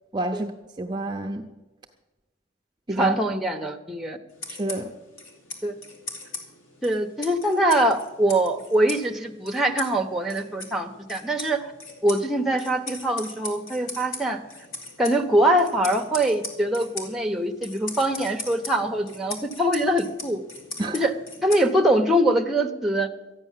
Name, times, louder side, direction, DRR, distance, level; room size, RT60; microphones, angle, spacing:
voice 1, 0.1-0.5 0.8-1.5 2.9-3.1 4.5-4.9 20.8-21.0, right 2 dB, 20° right, 3 dB, 0.6 m, -28 dB
voice 2, 2.9-4.2 5.6-5.7 6.8-11.7 12.0-14.4 15.0-20.4 20.9-21.1 21.4-23.1, right 1 dB, ahead, 4 dB, 0.9 m, -23 dB
sound 1, 4.3-22.1, left 3 dB, 80° left, 2.6 m, -40 dB
13.5 x 9.6 x 7.4 m, 1.1 s
head